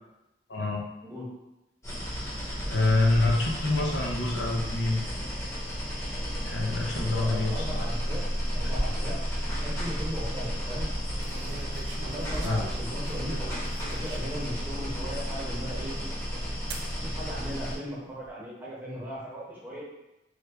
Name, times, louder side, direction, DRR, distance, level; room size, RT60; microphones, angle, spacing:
voice 1, 0.5-0.8 2.7-5.0 6.4-7.8 12.4-12.6, left 2 dB, 75° left, 0 dB, 0.6 m, -26 dB
voice 2, 1.0-1.3 7.0-8.2 8.5-9.2 9.6-10.9 12.1-13.4 13.9-16.0 16.9-19.8, equal, 10° right, -7 dB, 0.8 m, -37 dB
sound 1, 1.8-17.7, equal, 15° left, 0.8 m, -32 dB
sound 2, 9.5-10.0 11.2-14.6 15.2-15.3 16.7-16.9 17.8-18.3, right 4 dB, 85° right, 0.4 m, -43 dB
3.3 x 2.3 x 3.2 m, 0.96 s
head